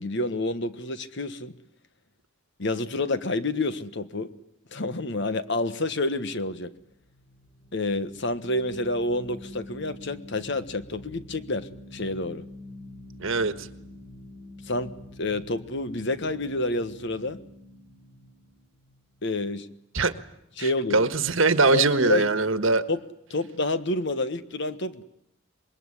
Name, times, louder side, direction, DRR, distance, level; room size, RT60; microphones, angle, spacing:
voice 1, 0.0-1.5 2.6-4.3 4.7-6.7 7.7-12.4 14.6-17.4 19.2-19.7 20.6-21.0 21.7-22.2 22.9-23.0 23.3-25.0, left 2 dB, 55° left, 12 dB, 1.4 m, -28 dB
sound 1, 6.7-19.8, left 1 dB, 40° left, 4.0 m, -47 dB
voice 2, 13.2-13.7 19.9-20.1 20.6-22.8, right 3 dB, 65° right, 12 dB, 1.5 m, -22 dB
26.0 x 21.0 x 9.9 m, 0.80 s
head